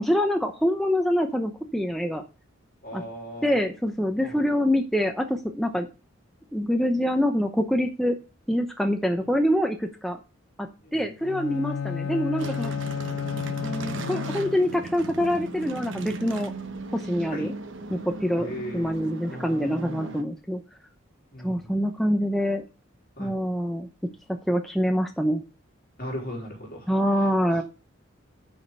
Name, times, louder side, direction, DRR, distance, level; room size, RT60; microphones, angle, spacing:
voice 1, 0.0-2.2 2.9-3.0 3.4-5.9 6.5-8.2 8.5-10.2 10.6-12.7 13.6-16.5 16.9-17.5 17.9-20.6 21.4-22.6 23.2-23.9 24.5-25.4 26.9-27.6, equal, ahead, 3 dB, 0.7 m, -25 dB
voice 2, 2.8-3.6 4.2-4.5 9.1-9.3 10.8-11.1 17.3-17.5 18.4-18.9 19.3-20.1 21.3-21.6 23.2-23.3 26.0-26.9 27.2-27.3, equal, 45° left, -1 dB, 3.6 m, -38 dB
Bowed string instrument, 11.2-14.9, left 6 dB, 90° left, 0.4 m, -32 dB
sound 1, 12.4-20.2, right 2 dB, 65° right, 1.0 m, -37 dB
10.0 x 5.1 x 5.4 m, 0.31 s
head